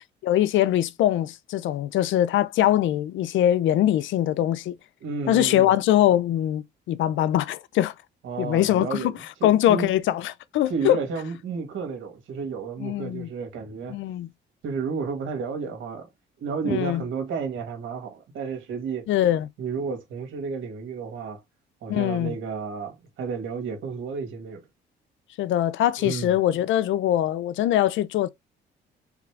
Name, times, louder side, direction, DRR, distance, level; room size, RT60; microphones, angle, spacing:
voice 1, 0.2-4.8 5.3-7.9 8.4-9.1 9.4-11.0 12.8-13.3 13.9-14.3 16.6-17.0 19.1-19.5 21.9-22.4 25.4-28.3, left 12 dB, 80° left, 0.5 m, -22 dB
voice 2, 5.0-5.7 8.2-9.1 9.4-9.9 10.7-14.0 14.6-16.1 16.4-19.1 19.6-21.4 21.8-24.7 26.0-26.3, right 5 dB, 80° right, 1.7 m, -32 dB
3.7 x 3.2 x 3.3 m
cardioid pair, 90°, 20 cm